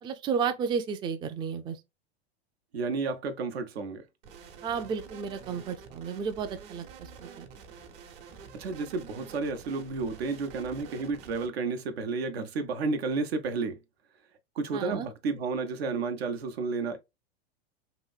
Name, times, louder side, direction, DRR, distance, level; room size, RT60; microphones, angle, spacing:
voice 1, 0.0-1.8 4.6-7.5 14.7-15.1, right 6 dB, 15° right, 0.3 m, -32 dB
voice 2, 2.7-4.0 8.5-13.8 14.6-17.0, right 4 dB, 90° right, 0.7 m, -31 dB
sound 1, 4.2-11.5, right 6 dB, 60° right, 0.9 m, -48 dB
2.9 x 2.6 x 2.4 m
hypercardioid pair, 105°, 30 cm